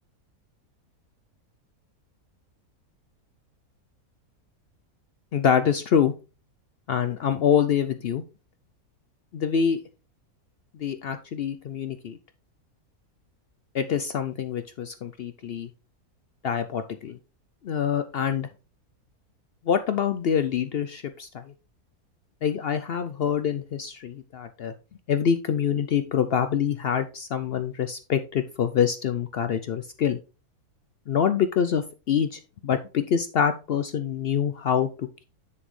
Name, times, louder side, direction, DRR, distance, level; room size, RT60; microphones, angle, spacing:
voice 1, 5.3-6.1 6.9-8.2 9.3-9.8 10.8-12.2 13.7-15.7 16.4-17.2 17.6-18.5 19.7-21.5 22.4-24.7 25.1-30.2 31.1-35.2, left 8 dB, 75° left, 9 dB, 0.5 m, -25 dB
7.3 x 6.9 x 3.1 m, 0.32 s
omnidirectional pair, 1.6 m